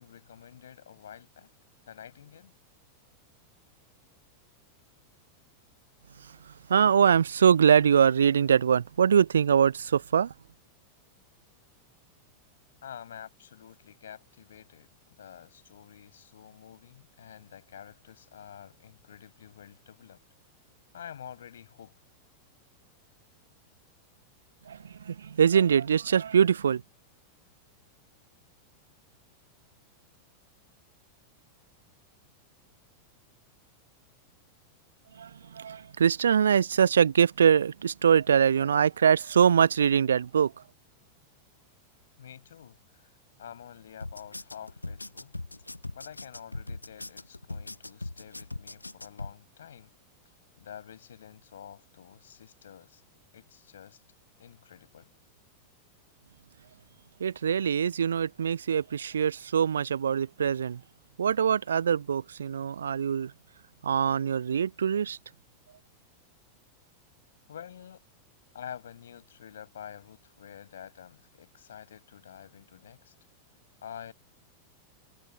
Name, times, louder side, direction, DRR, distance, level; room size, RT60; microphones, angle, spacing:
voice 1, 0.0-1.5 1.9-2.5 12.8-14.9 15.2-20.2 20.9-21.9 42.2-43.1 43.4-45.3 45.9-49.9 50.6-53.0 53.3-54.0 54.4-55.1 67.5-68.0 68.5-73.1 73.8-74.1, left 9 dB, 65° left, 7.3 m, -48 dB
voice 2, 6.7-10.3 24.7-26.8 35.2-40.5 57.2-60.8 61.2-63.3 63.8-65.2, right 7 dB, 70° right, 0.8 m, -23 dB
sound 1, 44.0-49.3, left 2 dB, 85° left, 1.4 m, -40 dB
figure-of-eight pair, 90°, 0 cm